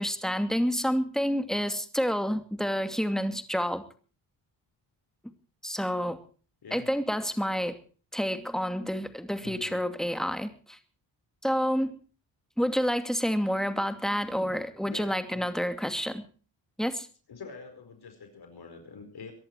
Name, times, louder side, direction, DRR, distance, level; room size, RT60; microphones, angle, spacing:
voice 1, 0.0-3.8 5.6-6.2 6.7-7.8 8.1-10.8 11.4-12.0 12.6-16.2 16.8-17.1, equal, ahead, 8 dB, 2.6 m, -29 dB
voice 2, 9.4-9.8 14.8-15.5 17.3-19.3, left 5 dB, 55° left, 6 dB, 4.8 m, -45 dB
23.5 x 11.0 x 4.7 m, 0.39 s
cardioid pair, 65°, 45 cm